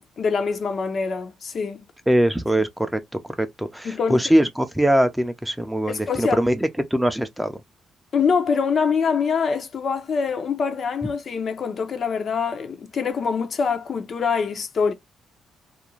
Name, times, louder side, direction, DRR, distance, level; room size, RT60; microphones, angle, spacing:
voice 1, 0.0-1.8 3.8-4.2 5.9-6.4 8.1-14.9, left 5 dB, 50° left, 0.5 m, -24 dB
voice 2, 2.1-3.0 3.4-6.6 6.9-7.5, right 1 dB, 5° right, 0.4 m, -21 dB
2.4 x 2.1 x 3.0 m
cardioid pair, 90°, 0 cm